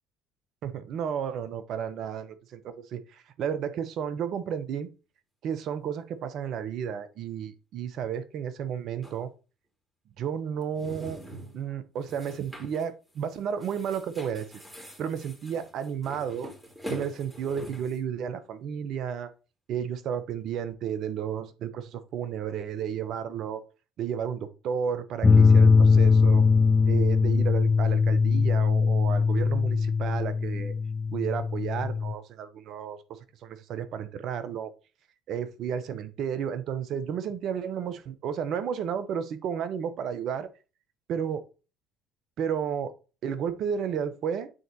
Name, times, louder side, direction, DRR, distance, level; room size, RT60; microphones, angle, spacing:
voice 1, 0.6-4.9 5.4-9.3 10.2-11.2 11.5-16.5 16.9-19.3 19.7-23.6 24.0-26.5 26.8-30.7 31.1-34.7 35.3-40.5 41.1-41.4 42.4-42.9 43.2-44.5, right 8 dB, 60° right, 0.9 m, -32 dB
sound 1, 9.0-9.2 10.6-11.6 12.0-12.9 13.2-13.3 13.6-18.0, equal, 5° right, 2.6 m, -43 dB
sound 2, 25.2-32.1, left 5 dB, 20° left, 0.6 m, -21 dB
9.0 x 3.9 x 2.9 m
hypercardioid pair, 70°, 0 cm